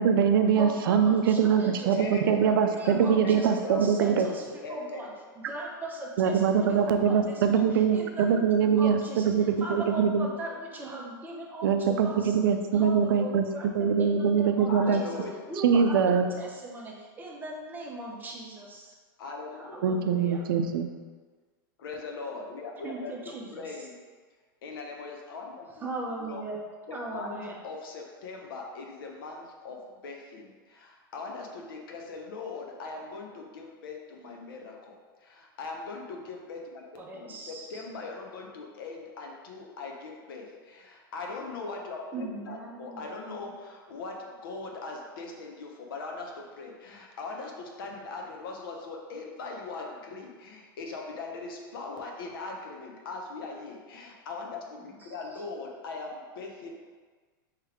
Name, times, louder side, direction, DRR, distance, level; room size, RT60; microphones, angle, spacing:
voice 1, 0.0-4.3 6.2-10.3 11.6-13.5 13.8-15.0 15.6-16.3 19.8-20.9, right 7 dB, 75° right, 6 dB, 0.5 m, -23 dB
voice 2, 0.6-5.1 5.3-8.5 8.7-12.4 12.7-16.0 16.3-18.9 19.6-20.4 22.8-23.9 25.8-26.6 26.9-27.6 37.0-37.8 42.1-43.0 54.8-55.4, right 1 dB, 15° right, -2 dB, 0.8 m, -39 dB
voice 3, 1.9-2.3 2.6-3.0 3.2-3.8 4.1-5.2 14.7-15.4 19.2-19.8 21.8-23.1 23.5-23.9 24.6-25.7 26.3-26.4 26.9-36.8 37.1-56.7, left 3 dB, 75° left, 1 dB, 0.9 m, -40 dB
3.4 x 3.2 x 4.8 m, 1.5 s
hypercardioid pair, 125°, 12 cm